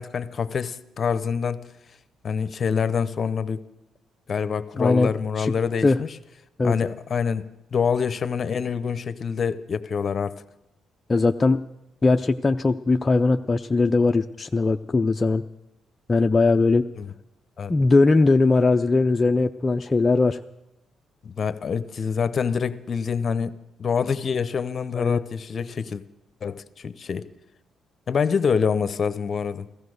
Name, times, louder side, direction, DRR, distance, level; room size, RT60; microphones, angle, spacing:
voice 1, 0.0-1.7 2.2-3.6 4.3-6.2 6.6-7.4 7.7-10.4 16.9-17.1 17.6-17.7 21.2-26.0 26.4-27.3 28.1-29.6, left 6 dB, 45° left, 13 dB, 0.8 m, -26 dB
voice 2, 4.8-5.1 5.4-5.5 5.8-6.0 6.6-6.9 11.1-11.6 12.0-15.4 16.1-16.9 17.7-20.4 24.9-25.2, left 3 dB, 25° left, 5 dB, 0.5 m, -20 dB
15.5 x 14.5 x 6.4 m, 0.88 s
cardioid pair, 85°, 0 cm